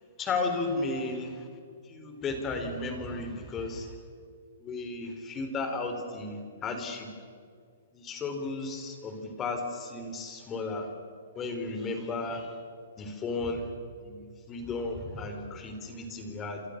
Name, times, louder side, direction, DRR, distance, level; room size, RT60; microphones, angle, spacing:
voice 1, 0.2-1.5 1.8-3.9 4.6-7.1 7.9-10.9 11.4-12.6 13.0-13.7 14.0-16.6, left 3 dB, 20° left, 6 dB, 4.1 m, -34 dB
29.5 x 27.0 x 6.8 m, 2.2 s
hypercardioid pair, 155°, 0 cm